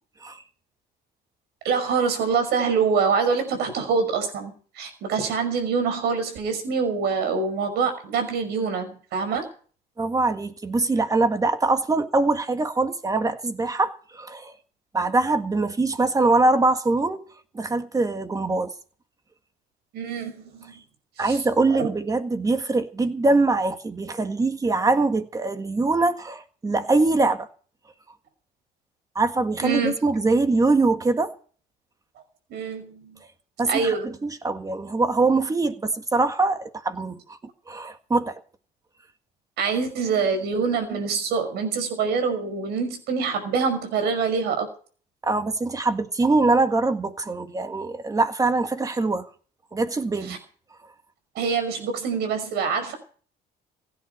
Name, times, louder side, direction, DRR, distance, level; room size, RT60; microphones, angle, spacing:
voice 1, 1.6-9.4 19.9-20.7 21.2-21.4 21.7-21.9 29.6-29.9 32.5-33.2 33.6-34.1 39.6-44.7 50.3-50.4 51.4-52.9, right 5 dB, 75° right, 5.6 m, -25 dB
voice 2, 10.0-14.5 14.9-17.2 17.5-18.7 21.2-27.5 29.2-31.3 33.6-37.4 37.7-38.4 45.2-49.3 49.7-50.4, right 3 dB, 20° right, 1.7 m, -23 dB
16.5 x 9.9 x 6.8 m
cardioid pair, 110°, 17 cm